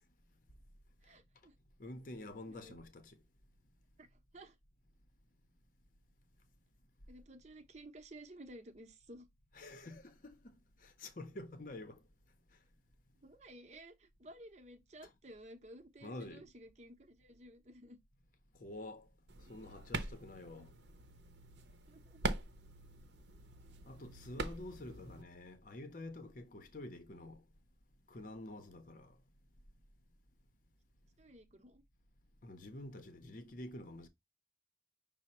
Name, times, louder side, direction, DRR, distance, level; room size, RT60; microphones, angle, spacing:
voice 1, 1.0-1.5 2.5-2.7 4.0-4.1 4.3-4.6 7.1-9.3 13.2-18.0 20.5-20.7 21.9-22.4 31.2-31.8, right 1 dB, 40° right, 0.8 m, -54 dB
voice 2, 1.8-3.2 9.5-12.0 15.0-15.1 16.0-16.5 18.6-19.1 19.5-20.7 23.9-27.4 28.1-29.2 32.4-34.1, left 1 dB, 50° left, 0.7 m, -48 dB
sound 1, 19.3-25.2, right 3 dB, 75° right, 0.7 m, -43 dB
6.1 x 2.1 x 4.2 m
head